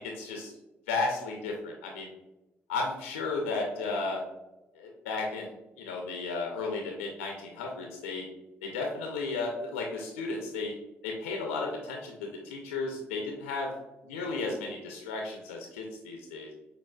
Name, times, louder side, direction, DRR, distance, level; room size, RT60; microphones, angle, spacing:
voice 1, 0.2-0.5 0.9-2.1 2.7-4.2 4.8-8.3 8.6-10.7 11.0-13.7 14.1-16.5, left 3 dB, 80° left, 0 dB, 0.4 m, -34 dB
6.4 x 2.3 x 2.2 m, 1.0 s
figure-of-eight pair, 40°, 7 cm